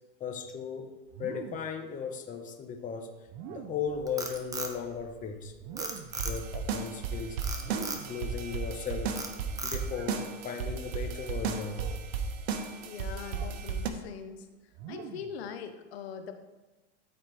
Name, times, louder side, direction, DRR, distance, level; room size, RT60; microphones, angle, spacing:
voice 1, 0.2-0.9 1.2-3.1 3.5-5.5 6.2-7.6 7.9-9.2 9.6-11.9, left 6 dB, 25° left, 4 dB, 1.0 m, -37 dB
sound 1, 1.1-1.8 3.3-4.0 5.6-6.3 7.6-8.3 9.8-10.2 11.6-12.1 13.3-13.6 14.7-15.4, right 8 dB, 40° right, 0.6 m, -45 dB
Frog, 3.9-5.4 5.8-6.6 7.4-8.1 8.6-8.8 9.2-10.1, right 3 dB, 10° right, 0.9 m, -37 dB
sound 2, 6.1-13.9, right 5 dB, 85° right, 1.0 m, -34 dB
voice 2, 12.5-14.5 14.9-16.3, left 7 dB, 85° left, 7 dB, 0.9 m, -42 dB
13.0 x 4.3 x 3.4 m, 1.1 s
supercardioid pair, 135°, 31 cm